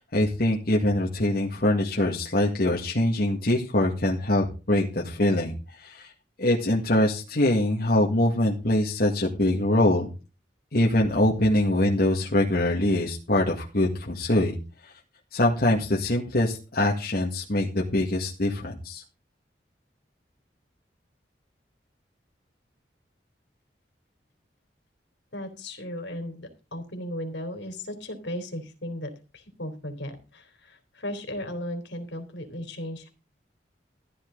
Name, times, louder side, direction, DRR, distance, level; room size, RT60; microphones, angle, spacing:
voice 1, 0.0-5.6 5.8-6.1 6.4-10.1 10.7-14.6 15.3-19.0, left 1 dB, 55° left, -2 dB, 1.9 m, -23 dB
voice 2, 25.3-33.1, left 1 dB, 80° left, 6 dB, 3.4 m, -36 dB
14.5 x 10.0 x 3.9 m, 0.32 s
head